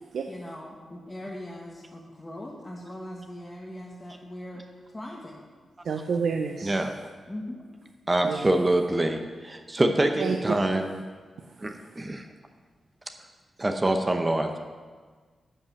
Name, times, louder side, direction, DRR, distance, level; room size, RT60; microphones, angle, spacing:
voice 1, 0.3-5.4 6.9-7.6, left 1 dB, 20° left, -3 dB, 1.4 m, -40 dB
voice 2, 5.8-6.8 8.2-8.5 10.2-10.4, right 5 dB, 75° right, 5 dB, 0.7 m, -28 dB
voice 3, 6.6-6.9 8.1-11.0 11.6-12.3 13.6-14.6, right 1 dB, 25° right, 5 dB, 0.8 m, -25 dB
11.0 x 5.5 x 7.0 m, 1.5 s
cardioid pair, 75°, 0 cm